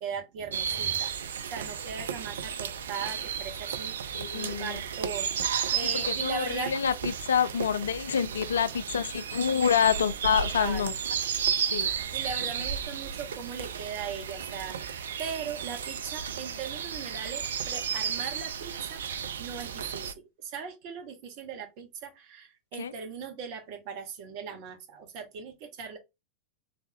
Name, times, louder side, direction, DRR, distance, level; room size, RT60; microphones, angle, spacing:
voice 1, 0.0-5.3 5.7-6.7 10.3-10.9 12.1-26.0, right 6 dB, 45° right, 1.1 m, -39 dB
sound 1, 0.5-20.1, right 7 dB, 65° right, 0.4 m, -33 dB
voice 2, 4.1-4.8 5.8-10.9 11.6-11.9 22.8-22.9, left 7 dB, 65° left, 0.4 m, -27 dB
3.5 x 3.2 x 2.7 m
figure-of-eight pair, 90°, 0 cm